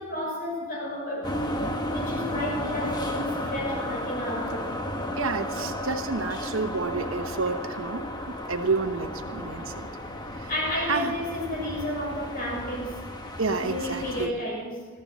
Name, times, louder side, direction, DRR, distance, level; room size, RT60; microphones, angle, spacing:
voice 1, 0.0-1.3 1.7-4.8 10.5-13.1 13.6-14.9, left 1 dB, 45° left, -2 dB, 6.0 m, -32 dB
sound 1, 1.2-14.3, left 1 dB, 20° left, 1.4 m, -33 dB
voice 2, 5.2-9.9 10.4-10.5 10.9-11.1 13.4-14.3, right 4 dB, 70° right, 6 dB, 1.1 m, -29 dB
22.0 x 14.0 x 4.2 m, 1.4 s
head